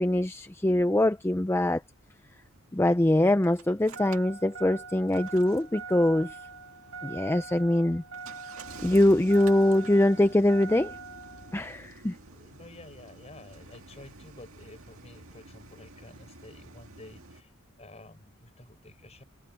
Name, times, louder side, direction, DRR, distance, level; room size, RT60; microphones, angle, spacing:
voice 1, 0.0-1.8 2.7-6.4 7.0-8.0 8.8-11.0 11.5-12.2, left 1 dB, 10° left, 0.5 m, -23 dB
Engine starting, 2.3-17.4, right 4 dB, 85° right, 2.0 m, -45 dB
voice 2, 12.3-17.5 17.8-19.2, left 2 dB, 30° left, 5.1 m, -50 dB
head